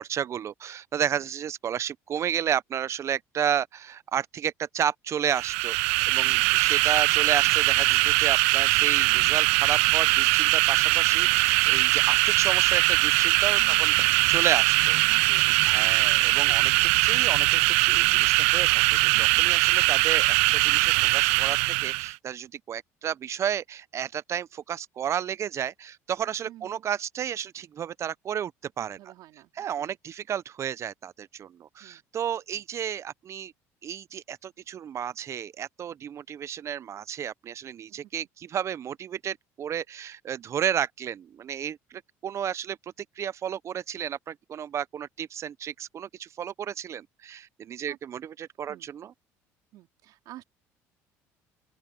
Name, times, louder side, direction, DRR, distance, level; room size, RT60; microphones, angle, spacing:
voice 1, 0.0-5.8 6.1-15.2 15.6-29.1 29.6-33.5 33.8-42.8 43.2-49.1, right 9 dB, 45° right, 0.7 m, -32 dB
sound 1, 5.3-22.1, right 27 dB, 90° right, 0.3 m, -21 dB
voice 2, 13.5-14.0 15.1-15.9 26.5-26.8 28.8-29.9 31.8-32.0 37.9-38.0 47.9-48.0 48.7-48.9 49.7-50.4, right 15 dB, 70° right, 4.3 m, -50 dB
open air
supercardioid pair, 90°, 7 cm